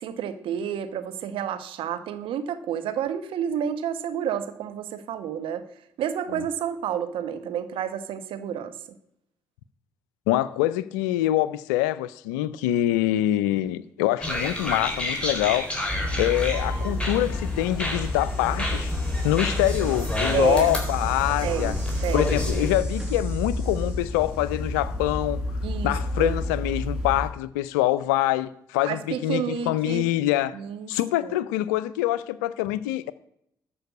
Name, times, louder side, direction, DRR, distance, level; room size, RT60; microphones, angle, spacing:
voice 1, 0.0-5.6 6.0-8.7 20.3-20.7 21.4-21.8 22.0-22.3 25.6-25.9 26.2-26.3 28.9-30.1 30.5-30.9 31.2-31.4, right 9 dB, 70° right, 1.1 m, -30 dB
voice 2, 10.3-15.7 16.2-18.9 19.2-21.7 22.1-25.4 25.8-30.6 30.9-33.1, left 14 dB, 80° left, 0.5 m, -25 dB
sound 1, 14.2-22.8, left 1 dB, 10° left, 4.0 m, -31 dB
sound 2, 15.9-27.3, left 1 dB, 5° right, 5.5 m, -29 dB
13.0 x 5.5 x 8.2 m
hypercardioid pair, 45°, 9 cm